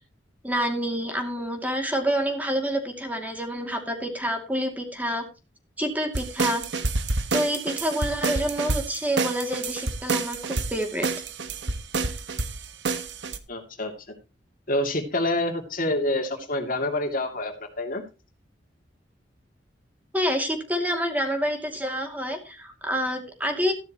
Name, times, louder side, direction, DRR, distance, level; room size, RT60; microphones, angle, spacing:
voice 1, 0.4-5.3 5.8-6.6 7.3-11.1 20.1-23.7, equal, 10° right, 4 dB, 2.5 m, -27 dB
sound 1, 6.1-13.4, right 3 dB, 70° right, 1.4 m, -28 dB
voice 2, 13.5-14.1 14.7-18.0, left 1 dB, 50° left, 4 dB, 2.5 m, -27 dB
14.0 x 12.0 x 3.0 m, 0.30 s
head